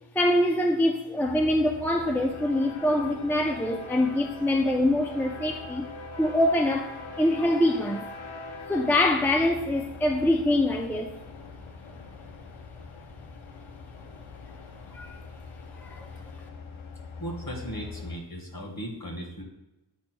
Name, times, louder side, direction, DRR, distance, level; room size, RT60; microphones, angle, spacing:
voice 1, 0.1-5.9 6.2-8.1 8.7-11.1 14.9-15.2 15.8-16.1, left 1 dB, 5° left, 3 dB, 0.5 m, -24 dB
sound 1, 1.2-18.2, left 4 dB, 85° left, 0.8 m, -42 dB
voice 2, 17.2-19.4, equal, 50° left, 0 dB, 1.7 m, -37 dB
10.0 x 4.3 x 2.2 m, 0.96 s
wide cardioid pair, 60°, 48 cm